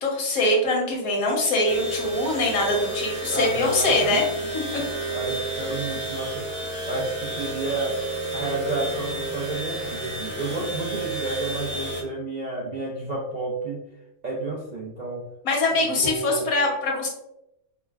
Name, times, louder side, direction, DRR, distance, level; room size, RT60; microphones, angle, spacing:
voice 1, 0.0-4.2 4.5-4.8 15.4-17.1, left 2 dB, 80° left, -1 dB, 1.4 m, -23 dB
sound 1, 1.7-12.0, right 1 dB, 10° left, 0.7 m, -31 dB
voice 2, 3.3-4.5 5.1-6.6 6.9-13.9 14.2-15.3 15.7-16.5, right 3 dB, 55° right, -5 dB, 0.5 m, -31 dB
4.8 x 2.1 x 2.3 m, 0.86 s
omnidirectional pair, 1.5 m